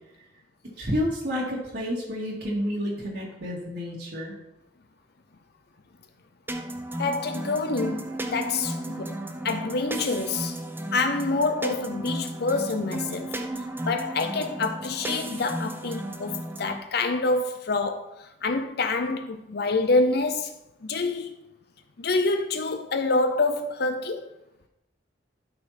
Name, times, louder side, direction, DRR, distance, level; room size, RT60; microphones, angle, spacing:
voice 1, 0.8-4.4, equal, 65° right, 2.4 m, -30 dB
sound 1, 6.5-16.8, right 1 dB, 10° right, 0.9 m, -34 dB
voice 2, 7.0-9.2 9.4-10.6 10.9-13.4 13.8-20.5 20.8-21.4 22.0-24.3, left 3 dB, 60° left, 0.7 m, -27 dB
12.0 x 5.9 x 4.4 m
head